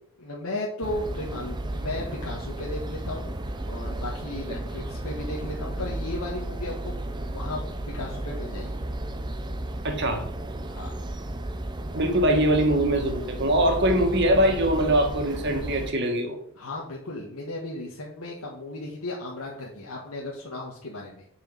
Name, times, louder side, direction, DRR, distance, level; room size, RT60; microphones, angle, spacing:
voice 1, 0.2-8.8 10.7-11.0 16.6-21.2, left 2 dB, 85° left, -3 dB, 1.6 m, -35 dB
sound 1, 0.8-15.9, right 1 dB, 20° right, 0.6 m, -33 dB
voice 2, 9.8-10.2 11.9-16.4, right 1 dB, 50° right, 4 dB, 1.6 m, -22 dB
8.9 x 4.9 x 5.4 m, 0.68 s
head